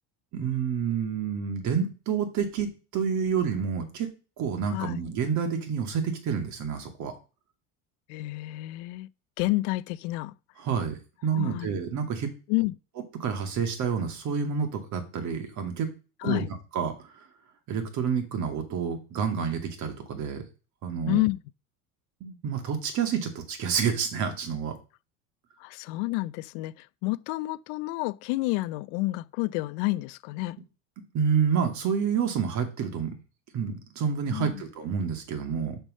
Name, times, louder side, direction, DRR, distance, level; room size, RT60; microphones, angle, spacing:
voice 1, 0.3-4.1 4.4-7.1 10.6-12.3 13.1-15.9 16.2-16.5 16.7-17.3 17.7-20.4 20.8-21.2 22.2-24.7 31.1-33.1 33.5-35.8, right 7 dB, 50° right, 2.3 m, -29 dB
voice 2, 4.7-5.0 8.1-9.1 9.4-10.3 11.3-11.7 12.5-12.8 16.2-16.5 21.1-21.4 25.6-30.6 34.3-34.6, left 20 dB, 75° left, 0.6 m, -29 dB
6.5 x 6.1 x 6.3 m
cardioid pair, 130°, 37 cm